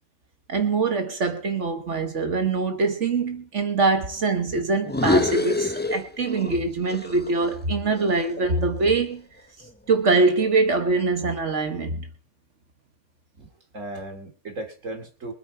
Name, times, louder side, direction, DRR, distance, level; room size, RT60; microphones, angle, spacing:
voice 1, 0.5-9.2 9.9-12.1, right 3 dB, 70° right, 1.8 m, -23 dB
sound 1, 4.8-6.6 6.9-9.1, left 2 dB, 10° left, 0.5 m, -26 dB
voice 2, 13.4-15.3, right 1 dB, 85° right, 3.0 m, -36 dB
23.5 x 8.8 x 4.7 m
omnidirectional pair, 1.3 m